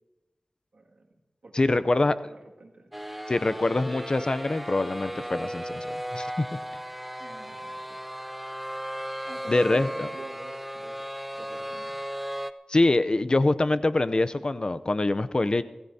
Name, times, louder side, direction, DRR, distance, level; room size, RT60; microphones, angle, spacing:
voice 1, 0.7-3.0 7.2-8.0 9.2-12.0, right 2 dB, 75° right, 0 dB, 2.1 m, -47 dB
voice 2, 1.5-2.1 3.3-6.6 9.5-10.1 12.7-15.6, left 2 dB, 45° left, 13 dB, 0.6 m, -24 dB
sound 1, 2.9-12.5, equal, 5° right, 0.6 m, -36 dB
25.0 x 15.0 x 2.8 m, 1.1 s
wide cardioid pair, 65°, 2 cm